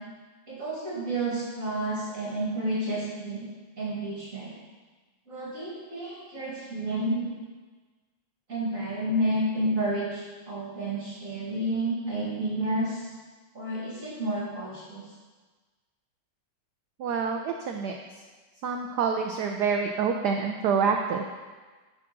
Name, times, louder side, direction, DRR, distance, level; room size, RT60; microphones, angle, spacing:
voice 1, 0.5-3.5 3.8-4.5 5.3-7.3 8.5-13.1 13.5-15.1, right 1 dB, 40° right, -7 dB, 2.5 m, -30 dB
voice 2, 17.0-17.9 18.6-21.3, right 6 dB, 75° right, 3 dB, 1.0 m, -27 dB
10.5 x 5.0 x 6.0 m, 1.4 s
omnidirectional pair, 2.4 m